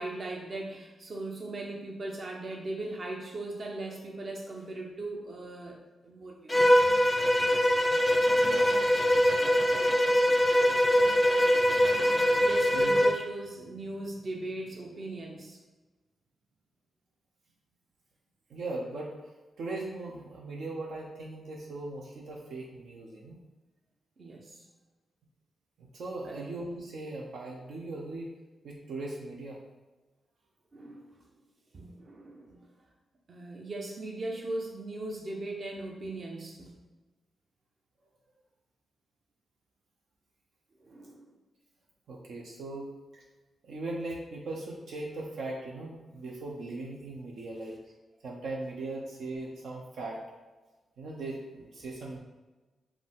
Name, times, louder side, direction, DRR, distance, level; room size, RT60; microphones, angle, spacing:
voice 1, 0.0-5.8 6.0-6.7 12.4-15.6 24.2-24.6 26.2-26.5 30.7-31.2 31.7-32.7 33.3-36.8 40.8-41.3, right 2 dB, 50° right, 0 dB, 0.9 m, -39 dB
Bowed string instrument, 6.5-13.2, equal, 10° left, 0.5 m, -23 dB
voice 2, 8.3-8.7 12.7-13.0 18.5-19.1 19.6-23.4 25.8-28.3 28.6-29.6 42.1-43.2 43.6-47.8 48.2-50.2 51.0-52.2, right 2 dB, 75° right, -2 dB, 0.8 m, -39 dB
5.0 x 2.7 x 3.6 m, 1.2 s
cardioid pair, 80°, 0 cm